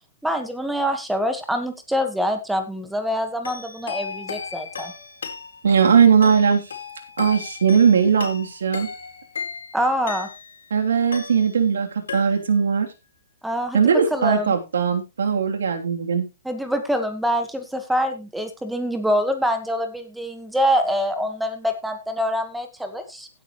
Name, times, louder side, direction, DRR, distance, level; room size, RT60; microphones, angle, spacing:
voice 1, 0.2-4.9 9.7-10.3 13.4-14.5 16.4-23.3, equal, ahead, 7 dB, 1.5 m, -25 dB
sound 1, 3.4-10.7 11.1-11.8 12.1-12.7, left 5 dB, 90° left, 4.4 m, -36 dB
voice 2, 5.6-6.6 7.2-8.9 10.7-12.9 13.7-16.3, right 6 dB, 90° right, 4 dB, 3.2 m, -19 dB
16.5 x 9.0 x 3.1 m, 0.27 s
hypercardioid pair, 165°, 0 cm